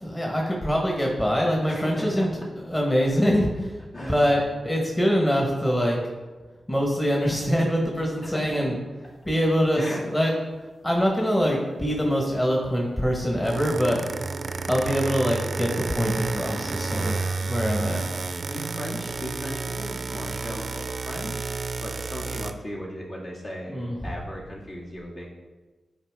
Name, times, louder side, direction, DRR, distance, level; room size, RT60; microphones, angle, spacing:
voice 1, 0.0-2.3 2.7-6.0 6.7-8.8 9.2-9.8 10.1-10.3 10.8-14.0 14.7-18.1 23.7-24.0, equal, 20° left, -1 dB, 1.4 m, -24 dB
voice 2, 1.7-2.5 3.9-4.2 8.2-8.6 9.8-10.0 18.5-25.3, equal, 60° left, -6 dB, 2.3 m, -36 dB
sound 1, 13.2-22.5, right 4 dB, 60° right, 0.5 m, -31 dB
9.6 x 4.6 x 3.7 m, 1.3 s
cardioid pair, 65°, 0 cm